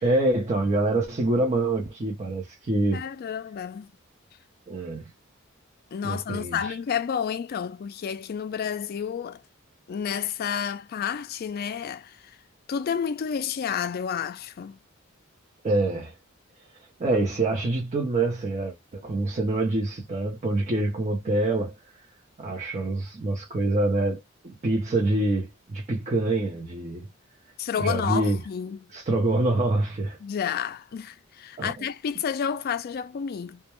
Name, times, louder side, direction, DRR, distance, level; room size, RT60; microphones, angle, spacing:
voice 1, 0.0-3.0 4.7-5.1 6.0-6.7 15.6-16.1 17.0-21.7 22.4-27.1 27.8-28.4 28.9-30.2 31.6-31.7, right 2 dB, 35° right, 0.6 m, -26 dB
voice 2, 2.9-3.9 5.9-9.4 9.9-12.4 12.7-14.8 27.6-28.9 30.2-33.6, left 7 dB, 45° left, 0.3 m, -30 dB
2.2 x 2.1 x 2.9 m
head